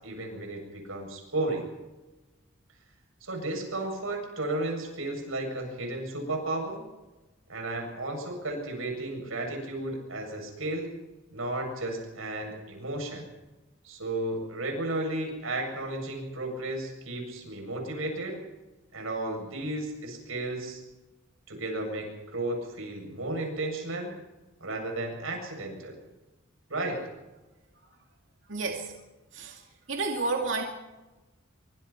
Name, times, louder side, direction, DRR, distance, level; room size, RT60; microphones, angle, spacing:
voice 1, 0.0-1.6 3.2-6.8 7.5-10.9 11.3-13.3 13.8-18.4 18.9-20.8 21.5-24.1 24.6-26.0 26.7-27.0, right 2 dB, 80° right, 2 dB, 7.9 m, -33 dB
voice 2, 28.5-28.9 29.3-29.6 29.9-30.6, right 3 dB, 65° right, 1 dB, 2.4 m, -30 dB
26.0 x 24.5 x 4.5 m, 1.1 s
head